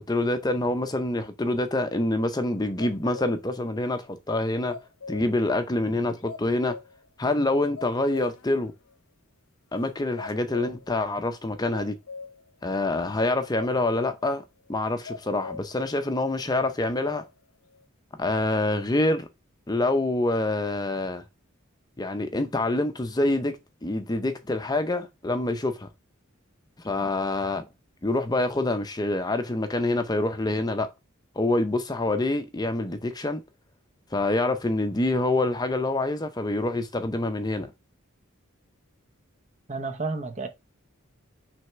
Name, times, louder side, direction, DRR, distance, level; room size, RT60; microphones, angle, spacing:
voice 1, 0.0-4.8 5.1-6.8 7.2-8.7 9.7-12.0 12.6-14.4 14.7-17.2 18.2-19.3 19.7-21.2 22.0-25.9 26.8-27.7 28.0-30.9 31.4-33.4 34.1-37.7, left 2 dB, 20° left, 0.6 m, -26 dB
sound 1, 2.8-3.6 3.9-4.0 4.7-5.5 5.9-6.0 6.2-7.1 7.4-7.5 7.8-8.6 8.9-9.0 9.7-9.9 10.2-11.0 11.7-12.5 13.5-14.3 15.1-15.8 16.2-16.3 16.6-17.3 17.7-17.8, left 4 dB, 85° left, 0.7 m, -40 dB
voice 2, 39.7-40.5, right 3 dB, 35° right, 0.8 m, -31 dB
6.2 x 3.4 x 5.6 m
head